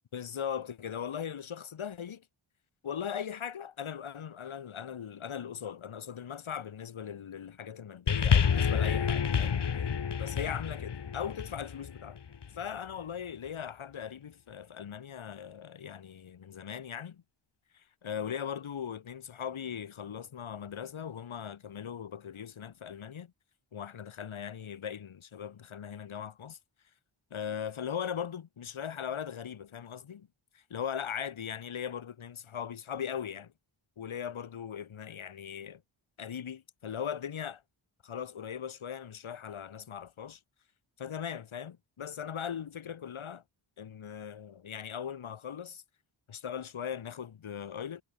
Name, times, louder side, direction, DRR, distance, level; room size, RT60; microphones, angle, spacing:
voice 1, 0.1-2.2 2.8-9.7 10.2-12.2 12.5-17.2 17.7-23.3 23.7-26.6 27.3-30.3 30.5-33.5 34.0-35.8 36.2-37.6 38.0-40.4 41.0-43.4 43.8-45.8 46.3-48.0, left 8 dB, 75° left, 1.4 m, -39 dB
sound 1, 8.1-12.6 13.4-13.5, left 7 dB, 55° left, 1.4 m, -29 dB
wide cardioid pair, 125°, 48 cm